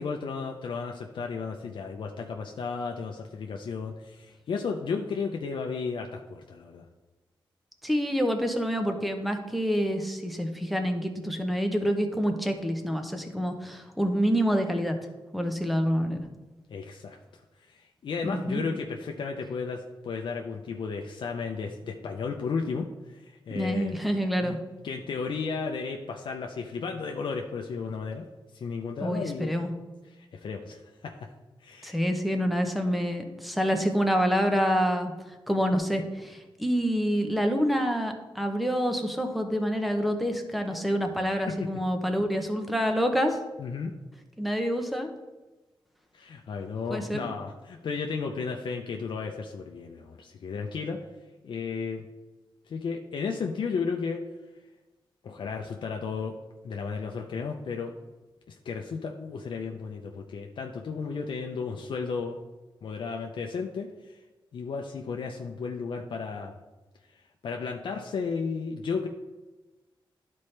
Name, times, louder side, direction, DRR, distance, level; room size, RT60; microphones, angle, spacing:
voice 1, 0.0-6.9 16.7-17.2 17.7-24.0 24.4-24.6 24.8-28.3 28.5-29.5 30.2-31.3 31.6-32.0 41.5-41.7 43.6-43.9 46.1-51.0 51.4-52.0 52.7-54.2 55.2-56.4 56.6-57.9 58.5-62.4 62.8-64.2 64.5-66.5 67.1-69.1, left 5 dB, 65° left, 2 dB, 0.6 m, -34 dB
voice 2, 7.8-15.0 15.3-16.2 18.2-18.6 23.5-24.6 29.0-29.7 31.8-35.1 35.5-43.4 44.4-45.1 46.9-47.3, equal, ahead, 5 dB, 0.8 m, -27 dB
12.5 x 4.2 x 3.3 m, 1.2 s
wide cardioid pair, 155°, 9 cm